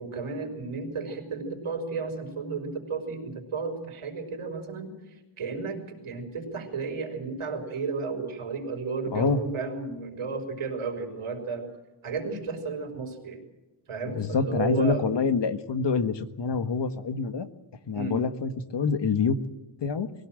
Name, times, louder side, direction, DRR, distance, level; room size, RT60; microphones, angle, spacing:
voice 1, 0.0-11.7 12.0-13.4 13.9-15.1 17.9-18.2, right 4 dB, 80° right, 5 dB, 5.0 m, -33 dB
voice 2, 9.1-9.4 14.1-17.5 17.9-19.4 19.8-20.1, left 5 dB, 60° left, 11 dB, 1.6 m, -26 dB
22.5 x 17.0 x 7.7 m, 1.1 s
wide cardioid pair, 125°, 49 cm